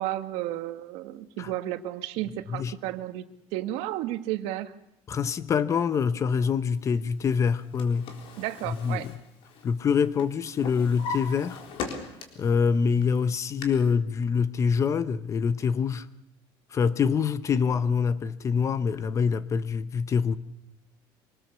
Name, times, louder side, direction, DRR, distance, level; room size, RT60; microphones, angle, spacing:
voice 1, 0.0-3.2 3.5-4.7 8.4-9.1, right 14 dB, 85° right, 1.5 m, -32 dB
voice 2, 5.1-8.1 8.7-9.1 9.6-11.6 12.4-16.1 16.7-20.4, left 6 dB, 30° left, 0.9 m, -25 dB
Drawer open or close, 7.4-9.9 10.2-12.5 13.0-13.6, left 4 dB, 60° left, 3.8 m, -38 dB
25.0 x 19.5 x 7.0 m
cardioid pair, 155°, 10 cm